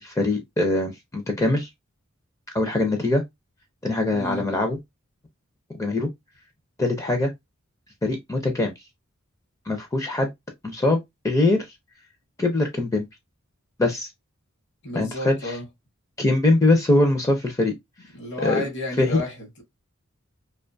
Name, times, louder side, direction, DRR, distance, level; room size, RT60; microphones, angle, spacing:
voice 1, 0.0-1.7 2.5-3.2 3.8-4.8 5.7-6.1 6.8-7.3 8.0-8.7 9.7-10.3 10.6-11.0 11.2-11.7 12.4-13.1 13.8-14.1 14.9-15.5 16.2-17.7 18.4-18.6 19.0-19.2, left 2 dB, 15° left, 0.4 m, -22 dB
voice 2, 4.1-4.4 14.8-15.6 18.1-19.6, left 2 dB, 55° left, 0.9 m, -31 dB
2.4 x 2.2 x 2.5 m
head